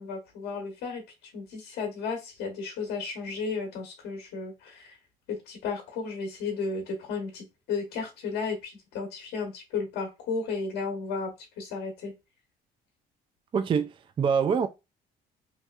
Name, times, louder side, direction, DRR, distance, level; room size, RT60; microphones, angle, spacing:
voice 1, 0.0-5.0 5.3-12.1, left 4 dB, 80° left, 1.1 m, -34 dB
voice 2, 13.5-14.7, right 6 dB, 30° right, 0.3 m, -25 dB
3.2 x 2.8 x 2.4 m
cardioid pair, 110°, 17 cm